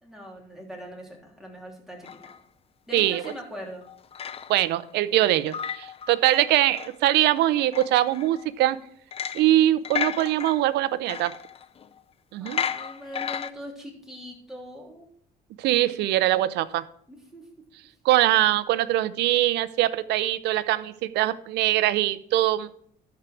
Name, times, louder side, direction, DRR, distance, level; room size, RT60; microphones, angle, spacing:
voice 1, 0.0-2.3 2.9-3.9 12.4-15.1 17.1-17.4, equal, 5° right, -2 dB, 3.3 m, -41 dB
sound 1, 2.0-2.4 3.0-3.4 3.8-4.8 5.2-7.0 7.4-8.4 9.1-9.6 9.8-12.0 12.5-13.5, left 7 dB, 35° left, 0.6 m, -34 dB
voice 2, 4.5-8.8 9.3-11.3 12.3-12.6 15.6-16.8 18.0-22.7, right 14 dB, 80° right, 16 dB, 0.7 m, -22 dB
12.5 x 4.8 x 6.2 m, 0.62 s
cardioid pair, 110°, 17 cm